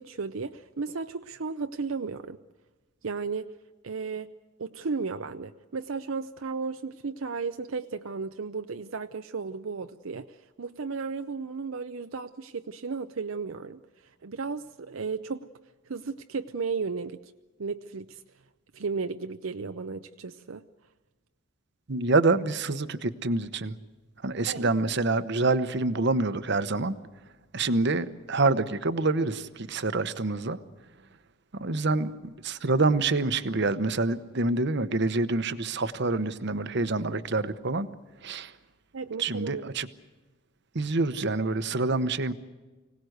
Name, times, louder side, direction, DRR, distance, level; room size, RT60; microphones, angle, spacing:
voice 1, 0.0-2.4 3.0-3.5 3.8-4.3 4.6-15.5 15.9-17.3 17.6-18.2 18.7-20.7 24.5-24.7 38.9-39.7, right 4 dB, 75° right, 8 dB, 0.6 m, -34 dB
voice 2, 21.9-23.8 24.2-27.0 27.5-30.6 31.5-37.9 38.2-38.5 39.2-39.9 40.7-42.3, right 3 dB, 55° right, 13 dB, 1.0 m, -26 dB
25.0 x 18.0 x 8.0 m, 1.3 s
head